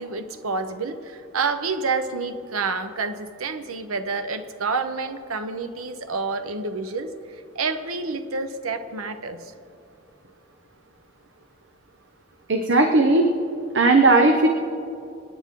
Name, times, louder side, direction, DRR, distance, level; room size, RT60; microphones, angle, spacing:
voice 1, 0.0-9.5, right 4 dB, 90° right, 9 dB, 0.9 m, -29 dB
voice 2, 12.5-13.3 13.7-14.5, right 2 dB, 60° right, 4 dB, 0.8 m, -16 dB
27.0 x 9.9 x 3.7 m, 2.6 s
head